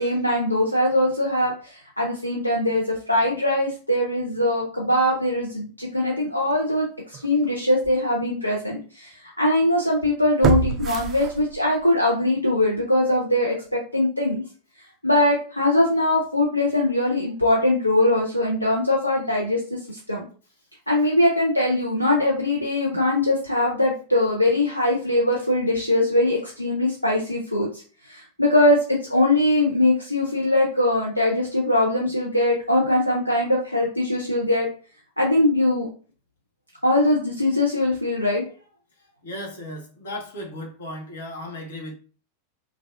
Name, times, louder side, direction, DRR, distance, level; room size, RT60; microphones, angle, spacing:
voice 1, 0.0-14.4 15.0-20.2 20.9-34.7 35.2-35.9 36.8-38.4, left 1 dB, 85° left, -2 dB, 0.5 m, -21 dB
sound 1, 7.1-7.3 7.8-7.9 10.4-11.9 12.2-12.3, right 6 dB, 30° right, 0.4 m, -25 dB
voice 2, 39.2-41.9, left 1 dB, 65° left, 1 dB, 0.9 m, -35 dB
3.3 x 2.3 x 2.5 m, 0.39 s
figure-of-eight pair, 90°, 0 cm